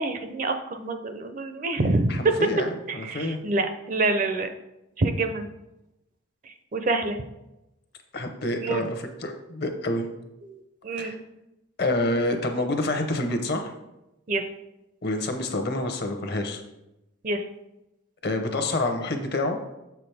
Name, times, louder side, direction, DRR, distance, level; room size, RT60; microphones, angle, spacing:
voice 1, 0.0-2.5 2.9-4.5 5.0-5.5 6.4-7.2 8.6-8.8 10.4-11.2 14.3-14.5 17.2-17.4, right 2 dB, 40° right, 8 dB, 0.5 m, -26 dB
voice 2, 2.1-3.4 8.1-10.1 11.0-11.2 11.8-13.7 15.0-16.6 18.2-19.6, left 2 dB, 50° left, 5 dB, 0.8 m, -27 dB
7.3 x 5.9 x 3.4 m, 0.92 s
head